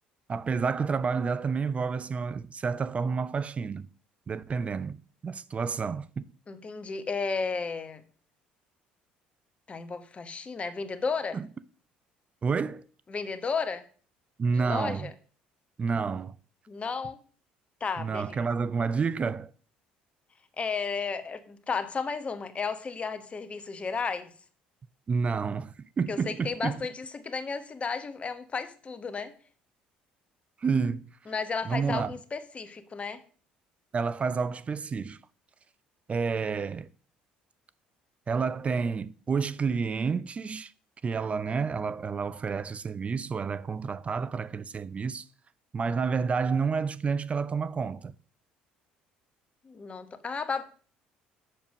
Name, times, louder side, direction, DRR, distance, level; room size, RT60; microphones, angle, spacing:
voice 1, 0.3-3.9 4.3-5.0 5.2-6.3 11.3-11.5 12.4-12.8 14.4-15.1 15.8-16.4 18.0-19.5 25.1-26.8 30.6-31.0 31.7-32.1 33.9-35.2 36.1-36.9 38.3-40.7 41.0-45.3 45.7-48.1, right 5 dB, 35° right, 0.5 m, -29 dB
voice 2, 6.5-8.0 9.7-11.4 13.1-13.8 14.5-15.1 16.7-17.2 17.8-18.4 20.6-24.3 26.1-29.3 31.3-33.2 49.6-50.6, left 5 dB, 35° left, 1.2 m, -33 dB
7.3 x 7.0 x 5.2 m
hypercardioid pair, 70°, 4 cm